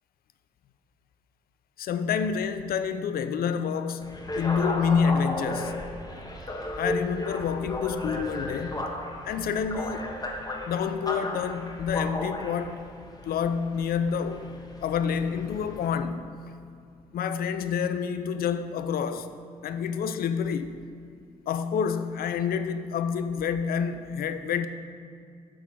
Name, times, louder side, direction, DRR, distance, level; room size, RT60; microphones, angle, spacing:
voice 1, 1.8-5.7 6.8-8.9 9.2-10.1 10.7-12.8 13.2-14.5 14.8-16.3 17.1-19.3 19.6-20.8 21.5-24.7, left 6 dB, 55° left, 0.5 m, -28 dB
sound 1, 4.0-15.9, left 1 dB, 20° left, 1.4 m, -35 dB
11.0 x 4.0 x 4.7 m
hypercardioid pair, 40°, 18 cm